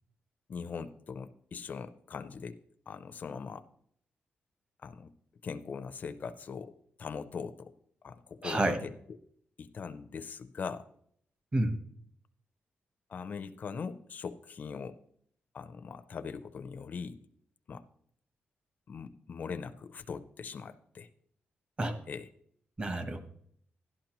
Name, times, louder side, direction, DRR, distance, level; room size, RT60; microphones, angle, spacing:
voice 1, 0.5-2.6 2.9-3.6 4.8-5.1 5.4-6.7 7.0-7.7 8.0-9.2 9.6-10.9 13.1-15.0 15.5-17.2 17.7-17.8 18.9-21.1 22.1-22.3, left 5 dB, 45° left, 9 dB, 0.5 m, -41 dB
voice 2, 8.4-8.8 11.5-11.7 21.8-22.0 22.8-23.2, right 1 dB, 25° right, 8 dB, 1.1 m, -29 dB
12.0 x 11.5 x 3.0 m, 0.66 s
wide cardioid pair, 140°, 4 cm